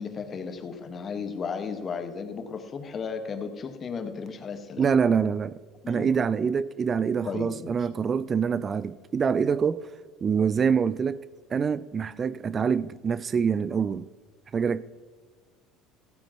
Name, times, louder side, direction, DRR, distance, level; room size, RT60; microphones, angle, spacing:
voice 1, 0.0-4.8 5.8-6.1 7.2-7.9, left 5 dB, 40° left, 1.5 m, -35 dB
voice 2, 4.8-5.6 5.9-9.9 10.2-11.2 11.5-14.1 14.5-14.8, right 6 dB, 35° right, 0.4 m, -25 dB
15.5 x 8.7 x 3.0 m
hypercardioid pair, 75°, 0 cm